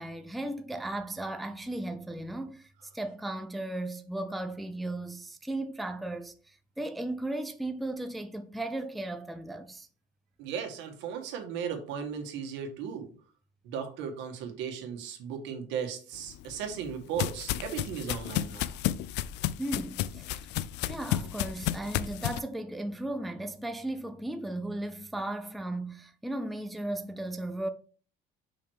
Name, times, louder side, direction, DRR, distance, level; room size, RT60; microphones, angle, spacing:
voice 1, 0.0-9.9 19.6-20.3 20.9-27.7, right 1 dB, ahead, 0.4 m, -36 dB
voice 2, 10.4-13.1 13.6-18.8, right 7 dB, 85° right, 1.7 m, -36 dB
sound 1, 16.3-22.4, left 13 dB, 70° left, 0.4 m, -32 dB
5.6 x 4.6 x 4.7 m
cardioid pair, 165°, 18 cm